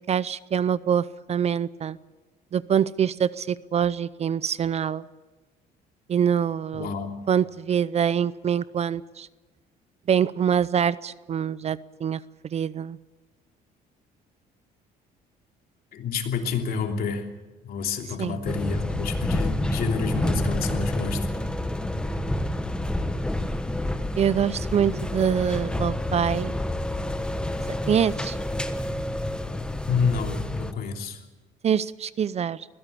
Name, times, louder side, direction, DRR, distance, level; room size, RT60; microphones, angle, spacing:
voice 1, 0.1-2.0 2.5-5.0 6.1-6.9 7.3-9.3 10.1-12.2 12.5-13.0 18.2-18.4 24.2-26.5 27.9-28.4 31.6-32.7, right 8 dB, 40° right, 18 dB, 0.6 m, -25 dB
voice 2, 6.7-7.2 15.9-17.3 17.6-21.3 29.9-31.2, left 6 dB, 60° left, 3 dB, 3.1 m, -29 dB
sound 1, 18.5-30.7, left 1 dB, 5° left, 1.3 m, -28 dB
22.0 x 16.5 x 8.5 m, 1.2 s
cardioid pair, 110°, 17 cm